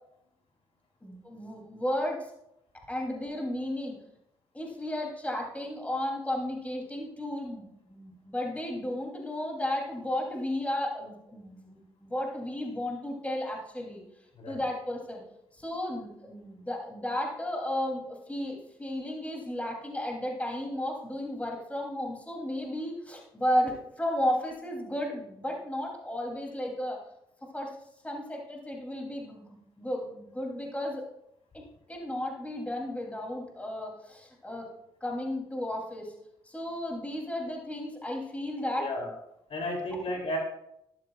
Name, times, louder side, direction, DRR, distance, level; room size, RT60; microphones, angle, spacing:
voice 1, 1.0-2.3 2.9-4.0 4.5-14.0 14.5-15.2 15.5-27.0 27.5-27.7 28.0-31.0 31.5-31.6 31.9-34.7 35.0-36.1 36.4-38.9, left 1 dB, 10° left, 0 dB, 3.3 m, -33 dB
voice 2, 38.8-39.1 39.5-40.4, left 1 dB, 60° left, 0 dB, 3.3 m, -33 dB
13.0 x 11.5 x 2.5 m, 0.79 s
supercardioid pair, 65°, 11 cm